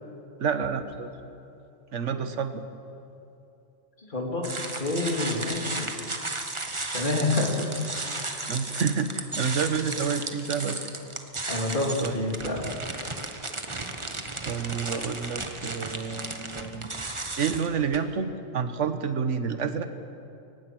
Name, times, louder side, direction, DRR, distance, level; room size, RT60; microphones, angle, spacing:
voice 1, 0.4-1.1 1.9-2.6 8.5-10.8 12.0-12.2 14.4-16.9 17.4-19.8, right 6 dB, 85° right, 9 dB, 1.5 m, -29 dB
voice 2, 4.0-5.9 6.9-8.3 11.5-12.6, left 2 dB, 45° left, 0 dB, 3.1 m, -28 dB
sound 1, 4.4-18.0, right 2 dB, 25° right, 1.2 m, -34 dB
23.5 x 19.5 x 6.1 m, 2.8 s
omnidirectional pair, 1.2 m